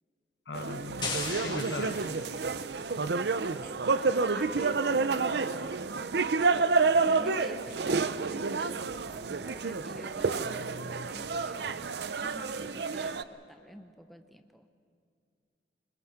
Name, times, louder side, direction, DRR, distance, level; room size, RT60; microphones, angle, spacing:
voice 1, 0.5-2.0 10.4-11.1, left 3 dB, 75° left, 10 dB, 0.9 m, -40 dB
sound 1, 0.5-13.2, right 4 dB, 70° right, 0.6 m, -29 dB
sound 2, 1.0-2.8, left 4 dB, 25° left, 2.1 m, -38 dB
voice 2, 3.4-5.3 7.0-14.7, equal, ahead, 7 dB, 0.8 m, -49 dB
25.5 x 21.0 x 5.9 m, 2.3 s
head